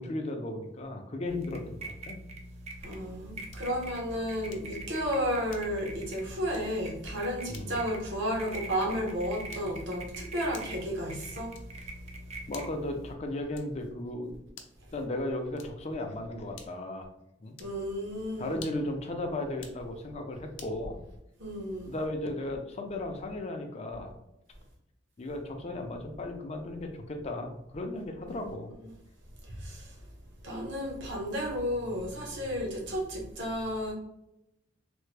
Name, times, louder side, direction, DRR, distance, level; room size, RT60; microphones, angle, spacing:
voice 1, 0.0-2.2 7.5-7.8 12.5-14.3 14.9-17.1 17.4-17.6 18.4-21.0 21.9-24.1 25.2-28.7, left 1 dB, 35° left, 4 dB, 0.5 m, -35 dB
sound 1, 1.3-13.1, right 2 dB, 35° right, 0.4 m, -44 dB
voice 2, 2.8-11.5 17.6-18.7 21.4-21.9 28.3-28.5 28.8-28.9 29.5-29.9 30.4-33.9, equal, 70° right, -2 dB, 1.0 m, -33 dB
sound 2, 3.5-3.8 4.5-4.8 5.5-5.9 6.5-6.8 7.5-7.8 8.5-8.8 9.5-9.9 10.5-10.9 11.5-11.9 12.5-12.9 13.5-13.9 14.5-14.9 15.5-15.9 16.5-16.9 17.5-17.8 18.5-19.0 19.5-19.8 20.6-20.8, left 6 dB, 85° left, 0.5 m, -51 dB
3.3 x 2.1 x 3.2 m, 0.85 s
head